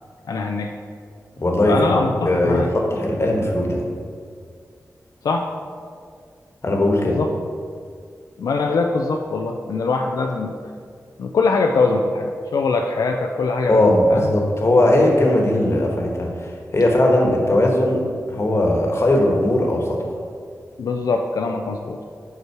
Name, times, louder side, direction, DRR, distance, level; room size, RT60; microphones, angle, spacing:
voice 1, 0.3-0.7 1.7-2.7 5.2-5.5 7.0-7.3 8.4-10.5 11.2-14.3 20.8-22.0, left 3 dB, 85° left, 3 dB, 0.4 m, -22 dB
voice 2, 1.4-1.9 2.3-3.9 6.6-7.2 13.7-16.3 16.7-18.0 18.3-20.0, left 1 dB, 45° left, 0 dB, 1.2 m, -18 dB
5.9 x 5.5 x 4.6 m, 2.1 s
wide cardioid pair, 70°, 6 cm